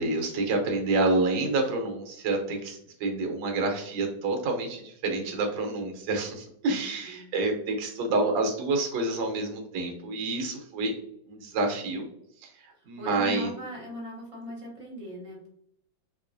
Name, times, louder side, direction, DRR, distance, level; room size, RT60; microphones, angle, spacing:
voice 1, 0.0-10.9 11.3-12.1 12.4-12.5 12.9-13.5, right 2 dB, 75° right, 3 dB, 1.4 m, -28 dB
voice 2, 6.7-7.3 12.7-15.5, equal, 25° right, -3 dB, 0.7 m, -40 dB
3.6 x 3.0 x 2.5 m, 0.71 s
omnidirectional pair, 2.1 m